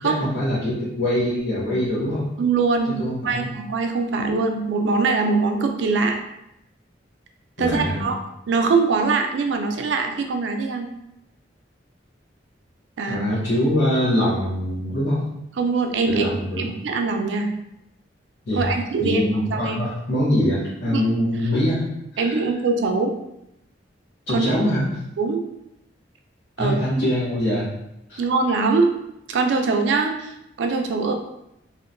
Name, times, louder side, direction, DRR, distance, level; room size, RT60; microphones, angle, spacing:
voice 1, 0.0-2.3 2.9-3.5 7.6-8.1 13.1-15.2 16.1-16.7 18.5-18.7 19.0-21.9 22.1-22.4 24.3-25.0 26.6-27.7 28.1-28.2, equal, 75° left, -11 dB, 0.8 m, -23 dB
voice 2, 2.4-6.2 7.6-8.2 8.5-10.9 13.0-13.3 15.6-16.3 16.6-17.5 18.6-19.8 20.9-21.0 22.2-23.1 24.3-24.5 25.2-25.4 26.6-26.8 28.2-28.9 29.3-31.1, right 4 dB, 70° right, 5 dB, 0.3 m, -22 dB
2.7 x 2.1 x 2.5 m, 0.83 s
head